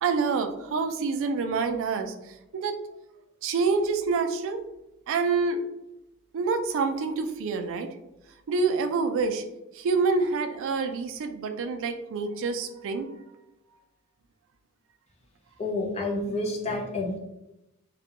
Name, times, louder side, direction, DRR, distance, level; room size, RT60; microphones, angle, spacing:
voice 1, 0.0-2.1 2.5-2.8 3.4-4.6 5.1-5.6 6.3-7.9 8.5-9.4 9.7-13.2, right 4 dB, 60° right, 8 dB, 0.3 m, -27 dB
voice 2, 15.6-17.2, left 2 dB, 30° left, 0 dB, 0.5 m, -29 dB
2.3 x 2.1 x 2.8 m, 0.92 s
head